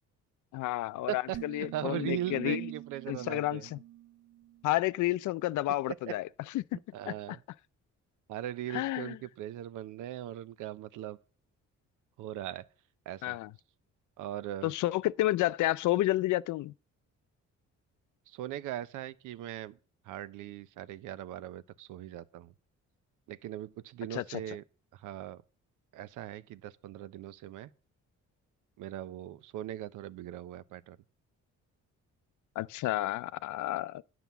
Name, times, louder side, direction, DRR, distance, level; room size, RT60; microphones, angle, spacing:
voice 1, 0.5-2.6 3.1-3.8 4.6-6.3 6.5-6.6 7.1-7.2 8.7-9.2 13.2-13.5 14.6-16.7 24.1-24.4 32.6-34.0, left 16 dB, 75° left, 0.5 m, -30 dB
voice 2, 1.1-3.7 5.9-6.1 6.9-7.4 8.3-11.2 12.2-12.7 13.1-13.4 14.2-14.7 18.3-19.8 20.0-22.5 23.3-24.6 24.9-25.4 25.9-27.7 28.8-31.0, right 12 dB, 85° right, 0.7 m, -39 dB
sound 1, 1.3-4.7, right 14 dB, 55° right, 0.7 m, -44 dB
9.2 x 6.0 x 6.9 m
cardioid pair, 90°, 30 cm